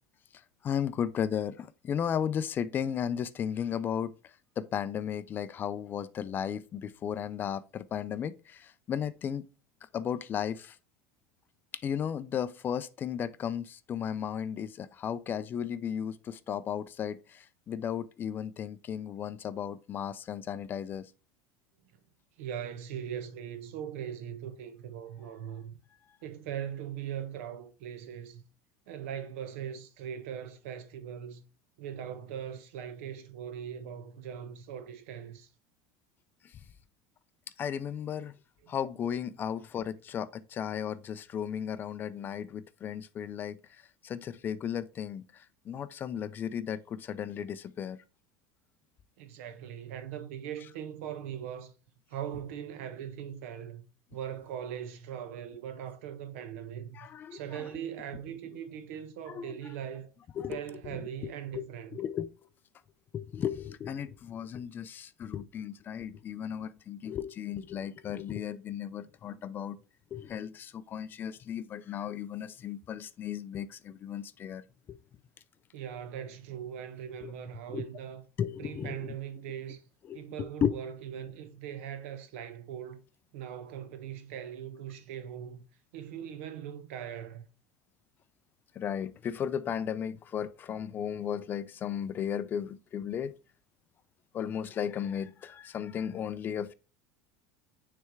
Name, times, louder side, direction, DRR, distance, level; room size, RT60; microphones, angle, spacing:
voice 1, 0.6-4.1 4.6-9.4 9.9-10.8 11.8-21.1 37.6-38.4 38.7-43.6 44.0-48.0 56.9-57.7 59.3-59.7 60.4-61.6 61.9-62.3 63.1-69.8 70.1-74.6 74.9-75.0 77.2-77.3 77.7-77.8 78.4-79.1 80.1-80.8 88.8-93.4 94.3-96.7, left 8 dB, 30° left, 0.4 m, -35 dB
voice 2, 22.4-25.8 26.2-28.4 28.9-31.4 31.8-35.5 38.6-38.7 49.2-51.7 52.1-53.8 54.1-60.1 60.5-62.0 75.7-78.2 78.6-79.8 80.1-83.0 83.3-85.7 85.9-87.4, right 9 dB, 80° right, 1.1 m, -40 dB
6.4 x 3.3 x 4.6 m
supercardioid pair, 140°, 7 cm